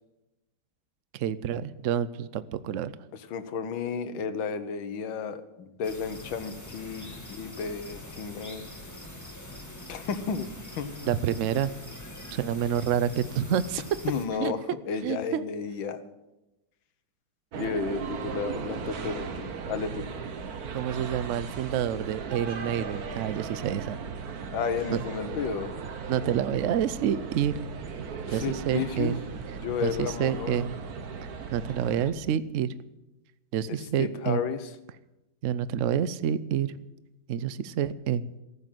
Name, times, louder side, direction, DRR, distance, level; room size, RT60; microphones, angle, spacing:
voice 1, 1.1-2.9 11.0-11.8 12.3-13.8 14.3-14.5 15.0-15.4 20.7-24.0 24.9-25.0 26.1-27.5 28.3-29.2 29.8-30.7 31.5-32.7 33.5-34.4 35.4-36.8 37.3-38.3, right 9 dB, 80° right, 16 dB, 0.6 m, -28 dB
voice 2, 3.1-8.7 9.9-10.5 10.8-11.1 14.0-14.6 14.8-16.0 17.6-20.1 24.5-25.7 28.3-29.1 29.5-30.6 33.7-34.7, left 6 dB, 75° left, 10 dB, 1.8 m, -32 dB
sound 1, 5.8-14.3, left 1 dB, 10° left, 1.8 m, -43 dB
sound 2, 17.5-32.1, right 6 dB, 55° right, 1.5 m, -37 dB
15.0 x 8.8 x 9.1 m, 0.98 s
omnidirectional pair, 2.2 m